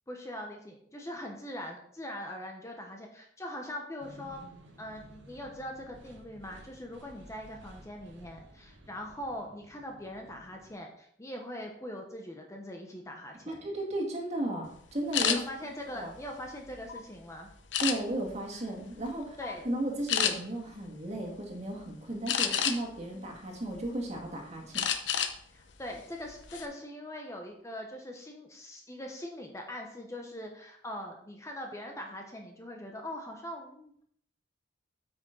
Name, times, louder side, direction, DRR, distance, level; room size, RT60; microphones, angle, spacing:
voice 1, 0.1-4.4 4.8-13.6 15.2-17.5 19.4-19.7 25.5-34.0, left 1 dB, 15° left, 2 dB, 0.9 m, -42 dB
sound 1, 4.0-10.8, right 1 dB, 85° right, 1.7 m, -54 dB
voice 2, 13.5-15.4 16.0-16.1 17.8-19.4 19.6-24.8, right 1 dB, 35° right, 0 dB, 2.0 m, -34 dB
sound 2, 15.1-15.4 16.0-17.0 17.7-18.3 18.8-19.1 19.4-19.6 20.1-20.3 22.3-23.0 23.5-24.2 24.7-25.4 25.7-25.9 26.3-26.7, left 8 dB, 80° left, 0.8 m, -29 dB
8.7 x 6.3 x 3.8 m, 0.65 s
head